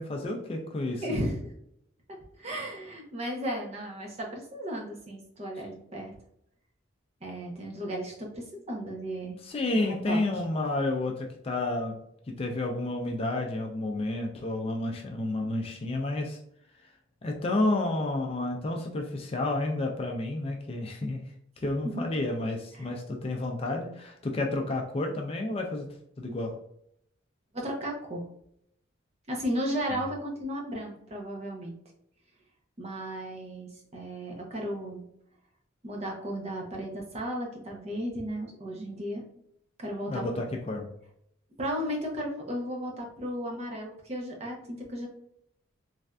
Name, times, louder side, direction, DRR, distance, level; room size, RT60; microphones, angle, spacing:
voice 1, 0.0-1.1 9.4-12.0 12.3-16.4 17.2-21.2 21.6-25.9 26.2-26.6 40.1-40.9, left 2 dB, 30° left, 2 dB, 0.3 m, -30 dB
voice 2, 1.0-1.5 2.4-6.1 7.2-9.4 9.7-10.2 21.8-22.1 22.7-22.9 27.5-28.2 29.3-31.7 32.8-35.0 35.8-39.2 39.8-40.2 41.6-45.1, equal, 30° right, 0 dB, 0.6 m, -34 dB
3.2 x 2.5 x 2.2 m, 0.73 s
head